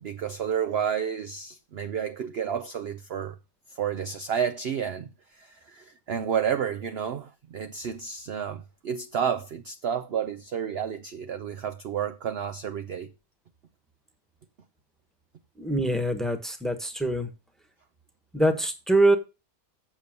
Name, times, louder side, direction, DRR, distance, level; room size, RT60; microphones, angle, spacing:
voice 1, 0.0-3.4 3.7-13.1, right 8 dB, 55° right, 0.7 m, -31 dB
voice 2, 15.6-17.3 18.3-19.2, right 1 dB, ahead, 1.2 m, -24 dB
7.7 x 6.8 x 6.5 m
omnidirectional pair, 1.6 m